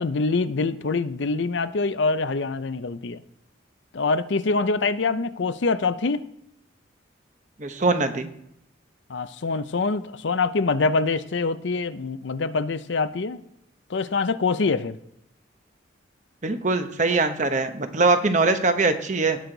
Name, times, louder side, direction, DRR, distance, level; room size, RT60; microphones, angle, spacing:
voice 1, 0.0-3.2 3.9-6.3 9.1-13.4 13.9-15.0, left 3 dB, 65° left, 13 dB, 0.6 m, -25 dB
voice 2, 7.6-8.3 16.4-19.4, right 3 dB, 40° right, 8 dB, 0.9 m, -22 dB
18.0 x 6.3 x 3.9 m, 0.75 s
head